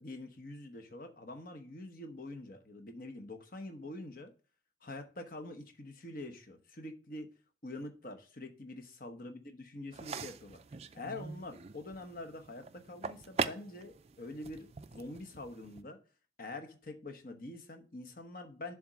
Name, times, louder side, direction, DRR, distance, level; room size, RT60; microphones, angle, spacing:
voice 1, 0.0-4.3 4.8-7.3 7.6-10.6 10.9-16.0 16.4-18.7, left 2 dB, 50° left, 1.1 m, -45 dB
sound 1, 9.9-15.8, right 4 dB, 35° right, 0.4 m, -42 dB
7.1 x 3.7 x 6.1 m
head